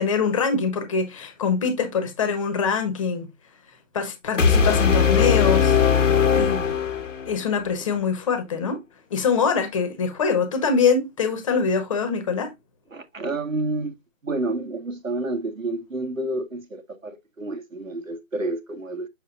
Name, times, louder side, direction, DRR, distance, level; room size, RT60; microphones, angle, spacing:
voice 1, 0.0-3.3 3.9-5.8 6.3-6.7 7.2-8.8 9.1-12.5, left 5 dB, 25° left, 1.2 m, -24 dB
sound 1, 4.4-7.4, left 6 dB, 75° left, 1.1 m, -19 dB
voice 2, 12.9-13.9 14.2-19.1, right 2 dB, 90° right, 1.6 m, -29 dB
6.8 x 6.5 x 2.5 m
figure-of-eight pair, 150°, 38 cm